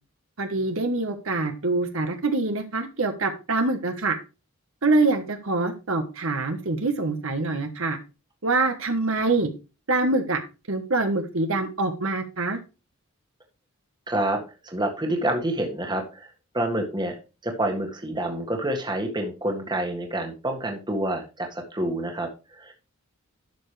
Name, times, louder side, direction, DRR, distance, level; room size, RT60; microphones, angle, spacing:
voice 1, 0.4-4.1 4.8-8.0 8.4-9.5 9.9-10.4 10.7-12.6, right 3 dB, 65° right, 6 dB, 1.3 m, -25 dB
voice 2, 14.1-16.3 16.5-17.2 17.4-22.7, right 1 dB, 20° right, 2 dB, 1.8 m, -28 dB
12.0 x 7.0 x 3.3 m, 0.30 s
head